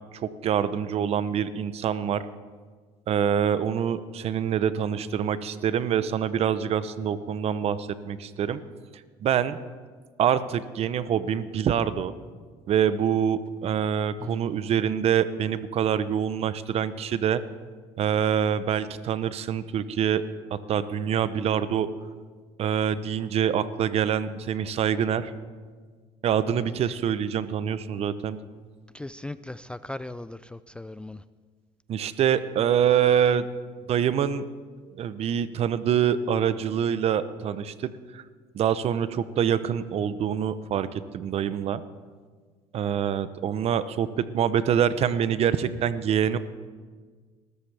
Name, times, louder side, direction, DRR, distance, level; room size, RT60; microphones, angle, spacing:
voice 1, 0.1-2.2 3.1-8.6 9.2-9.6 10.2-12.2 12.7-17.4 18.0-20.2 20.5-21.9 22.6-25.3 26.2-28.4 31.9-33.5 33.9-34.4 34.9-37.9 38.1-38.2 38.5-41.8 42.7-46.4, right 8 dB, 50° right, 14 dB, 0.7 m, -25 dB
voice 2, 28.9-31.2, left 2 dB, 10° left, 14 dB, 0.3 m, -38 dB
20.0 x 13.5 x 3.4 m, 1.5 s
supercardioid pair, 90°, 13 cm